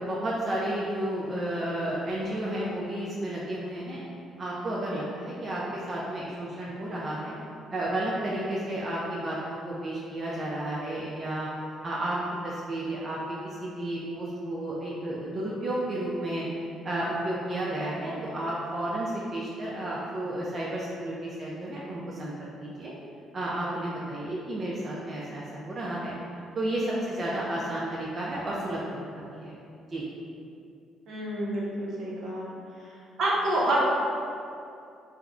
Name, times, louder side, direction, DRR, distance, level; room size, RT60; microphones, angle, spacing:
voice 1, 0.0-4.0 4.4-7.3 7.7-11.5 11.8-12.2 12.4-13.2 13.4-16.5 16.8-22.9 23.3-26.1 26.5-28.8 29.3-29.5 29.9-30.0, right 1 dB, 40° right, -6 dB, 0.4 m, -32 dB
voice 2, 31.1-32.6 33.2-33.8, right 1 dB, 65° right, -6 dB, 0.7 m, -28 dB
3.4 x 2.1 x 2.3 m, 2.5 s
supercardioid pair, 70°, 0 cm